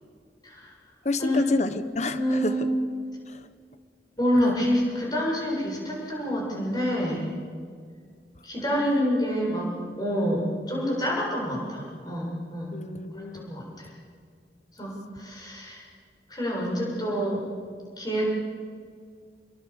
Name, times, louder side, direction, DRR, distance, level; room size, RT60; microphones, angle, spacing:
voice 1, 0.4-0.7 1.2-1.4 2.1-2.7 4.2-7.3 8.4-9.7 10.0-12.7 13.1-13.9 14.7-15.8 16.3-17.4 18.0-18.3, equal, 25° left, -3 dB, 7.5 m, -27 dB
voice 2, 1.0-2.7 3.3-3.5 12.7-13.5, left 2 dB, 40° left, 10 dB, 1.3 m, -29 dB
26.5 x 22.5 x 7.3 m, 2.1 s
head